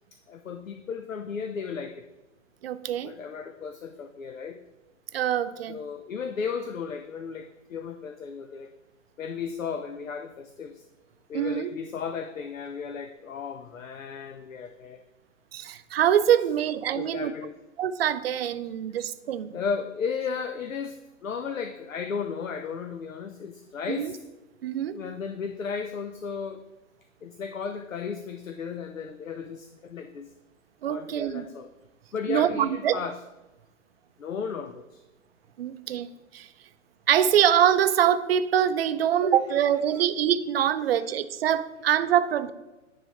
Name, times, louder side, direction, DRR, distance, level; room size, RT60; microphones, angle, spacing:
voice 1, 0.3-2.0 3.0-4.6 5.7-8.7 9.2-10.8 11.3-15.0 16.9-17.5 19.5-24.2 24.9-26.6 27.2-30.3 30.9-31.7 32.1-33.2 34.2-35.0 40.0-40.1, left 6 dB, 80° left, 8 dB, 0.6 m, -35 dB
voice 2, 2.6-3.1 5.1-5.8 11.3-11.7 15.5-17.3 17.8-19.5 23.9-24.1 24.6-25.0 30.8-31.5 32.3-33.0 35.6-36.1 36.3-36.5 37.1-42.5, right 10 dB, 50° right, 13 dB, 0.5 m, -24 dB
9.6 x 3.4 x 4.1 m, 1.1 s
figure-of-eight pair, 120°, 39 cm